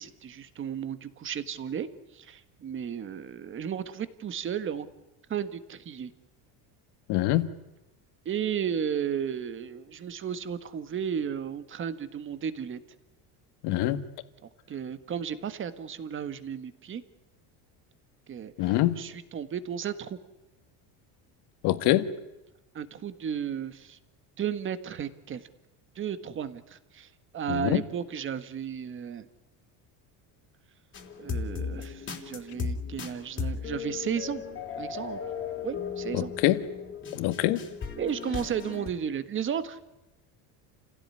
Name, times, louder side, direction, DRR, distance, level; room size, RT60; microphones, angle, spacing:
voice 1, 0.0-4.9 5.3-6.1 8.2-12.8 14.4-17.0 18.3-20.2 22.7-24.0 24.4-25.5 25.9-27.1 27.3-29.3 31.2-34.4 34.8-35.2 35.6-36.3 38.0-39.8, right 8 dB, 30° right, 1.6 m, -34 dB
voice 2, 7.1-7.5 13.6-14.0 18.6-19.0 21.6-22.1 27.5-27.8 36.1-36.6 37.1-37.6, left 15 dB, 70° left, 1.9 m, -24 dB
sound 1, 30.9-38.9, left 5 dB, 30° left, 3.3 m, -36 dB
30.0 x 16.5 x 9.7 m
cardioid pair, 160°, 41 cm